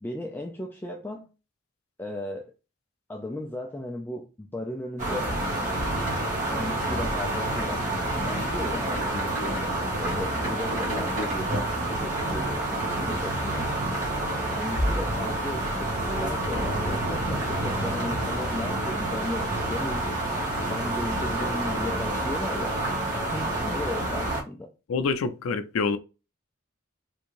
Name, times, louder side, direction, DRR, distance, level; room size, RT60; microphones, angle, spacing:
voice 1, 0.0-1.3 2.0-2.5 3.1-5.4 6.5-7.9 8.2-9.8 10.0-13.7 14.5-20.1 20.7-22.8 23.1-24.7, left 1 dB, 10° left, 0.3 m, -36 dB
sound 1, 5.0-24.4, right 1 dB, 35° right, 1.2 m, -28 dB
voice 2, 24.9-26.0, left 4 dB, 85° left, 0.4 m, -26 dB
3.5 x 2.6 x 3.0 m
head